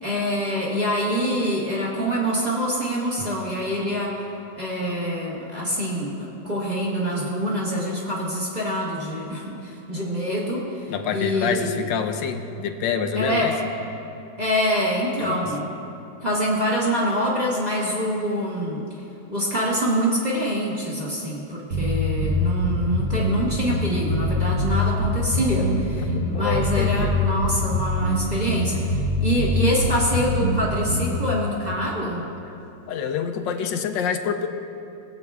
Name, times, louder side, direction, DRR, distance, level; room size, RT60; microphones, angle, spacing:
voice 1, 0.0-4.1 4.6-6.1 6.4-11.7 13.1-13.5 14.4-15.7 16.2-18.8 19.3-32.2, equal, 25° right, -6 dB, 1.4 m, -25 dB
voice 2, 10.9-13.5 15.2-15.5 26.0-27.1 32.9-34.5, left 7 dB, 85° left, 6 dB, 1.3 m, -27 dB
sound 1, 21.7-31.3, left 1 dB, 65° right, 1.6 m, -24 dB
22.5 x 7.8 x 2.4 m, 2.7 s
omnidirectional pair, 2.0 m